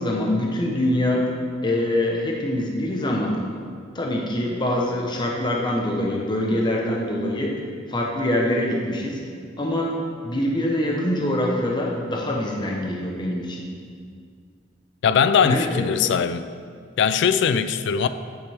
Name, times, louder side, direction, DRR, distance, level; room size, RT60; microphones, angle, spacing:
voice 1, 0.0-1.3 1.6-3.4 3.9-7.6 7.9-9.2 9.6-13.7 15.4-15.9, left 1 dB, 25° left, -1 dB, 0.9 m, -24 dB
voice 2, 15.0-16.5 17.0-18.1, left 7 dB, 65° left, 12 dB, 0.3 m, -20 dB
8.7 x 6.5 x 3.4 m, 2.1 s
head